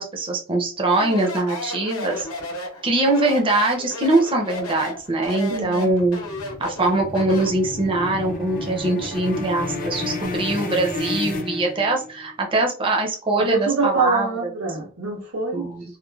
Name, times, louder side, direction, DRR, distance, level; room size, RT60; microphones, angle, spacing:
voice 1, 0.0-2.3 2.8-6.2 6.6-14.3 15.5-15.9, right 2 dB, 25° right, 0.5 m, -22 dB
Speech, 0.9-7.6, left 1 dB, 70° left, 0.8 m, -33 dB
sound 1, 5.0-12.2, left 2 dB, 40° left, 0.5 m, -31 dB
voice 2, 5.5-5.9 13.4-16.0, right 4 dB, 85° right, 1.2 m, -25 dB
3.0 x 2.1 x 2.3 m
head